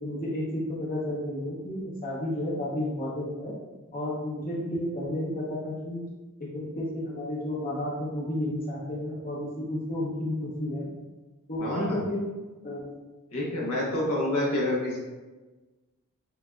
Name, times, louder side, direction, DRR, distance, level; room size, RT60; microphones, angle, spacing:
voice 1, 0.0-3.5 3.9-6.0 6.4-10.9 11.5-12.2 12.6-12.9, left 1 dB, 40° left, -6 dB, 0.9 m, -32 dB
voice 2, 11.6-12.0 13.3-15.0, left 1 dB, 75° left, -4 dB, 1.3 m, -27 dB
7.9 x 2.6 x 2.3 m, 1.2 s
head